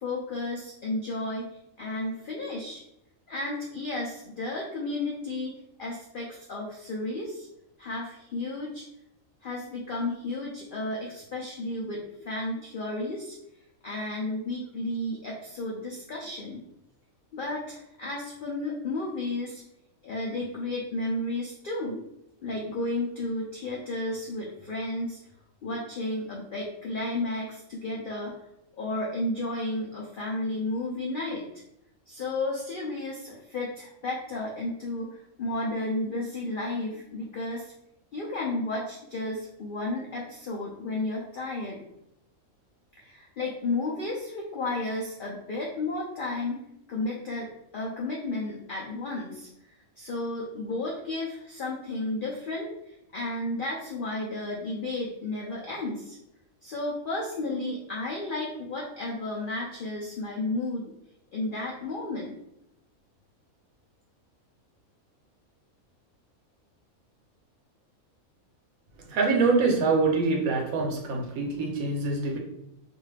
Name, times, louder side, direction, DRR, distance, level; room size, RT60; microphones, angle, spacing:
voice 1, 0.0-2.8 3.3-5.5 5.8-7.5 7.8-8.8 9.4-13.3 13.8-16.6 17.3-19.6 20.0-22.0 22.4-25.2 25.6-28.4 28.8-31.4 32.1-37.7 38.1-41.8 43.0-46.6 46.9-49.5 50.0-52.7 53.1-56.2 56.6-60.9 61.3-62.4, left 2 dB, 80° left, -3 dB, 0.4 m, -33 dB
voice 2, 69.1-72.4, right 4 dB, 75° right, 1 dB, 1.1 m, -25 dB
2.5 x 2.3 x 3.2 m, 0.81 s
omnidirectional pair, 1.5 m